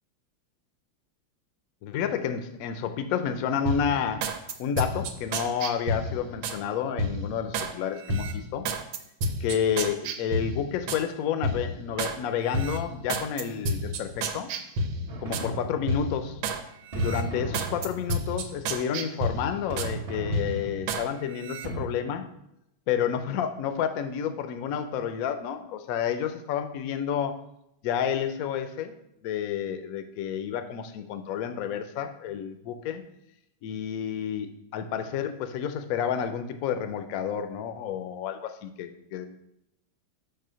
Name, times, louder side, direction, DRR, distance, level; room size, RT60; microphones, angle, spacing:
voice 1, 1.8-4.3 4.6-8.7 9.4-14.5 15.2-16.4 16.9-22.3 22.9-27.4 27.8-28.9 29.2-33.0 33.6-39.3, left 8 dB, 75° left, 8 dB, 0.8 m, -30 dB
sound 1, 3.7-6.6 7.0-7.7 8.1-11.1 11.4-12.2 12.5-15.5 15.9-16.6 17.0-19.9 20.3-21.1 21.4-21.7, right 1 dB, 80° right, 1.5 m, -31 dB
sound 2, 15.1-16.3 16.9-18.3 19.7-21.1 21.6-21.9, right 1 dB, 40° right, 0.9 m, -36 dB
5.0 x 4.7 x 6.2 m, 0.81 s
omnidirectional pair, 2.2 m